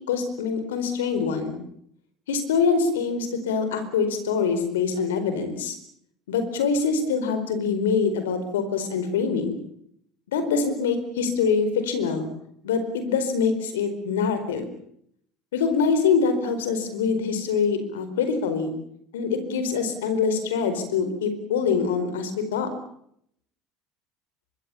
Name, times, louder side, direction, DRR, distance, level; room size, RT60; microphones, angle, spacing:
voice 1, 0.1-1.6 2.3-5.8 6.3-9.5 10.3-12.3 12.6-14.7 15.5-18.7 19.1-22.7, left 5 dB, 85° left, 10 dB, 4.5 m, -24 dB
24.5 x 24.0 x 7.2 m, 0.72 s
hypercardioid pair, 80°, 0 cm